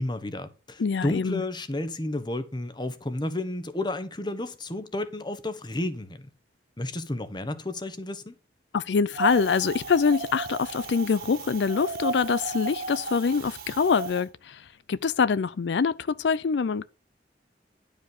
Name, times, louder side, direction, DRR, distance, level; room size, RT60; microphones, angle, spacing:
voice 1, 0.0-6.3 6.8-8.3, left 1 dB, 25° left, 1.1 m, -32 dB
voice 2, 0.8-1.4 8.7-16.9, left 5 dB, 85° left, 0.4 m, -25 dB
Wind, 9.1-14.2, right 3 dB, 55° right, 1.6 m, -34 dB
11.0 x 5.1 x 6.6 m
head